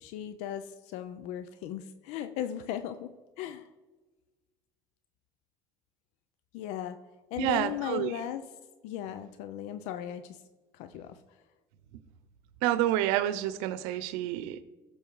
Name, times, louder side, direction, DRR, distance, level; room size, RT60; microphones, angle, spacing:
voice 1, 0.0-3.1 3.4-3.7 6.5-7.0 7.3-8.4 8.8-10.4 10.7-11.2, left 10 dB, 80° left, 11 dB, 0.6 m, -37 dB
voice 2, 7.4-8.1 12.6-14.6, right 13 dB, 85° right, 14 dB, 0.7 m, -28 dB
16.0 x 7.2 x 4.7 m, 1.2 s
supercardioid pair, 90°, 11 cm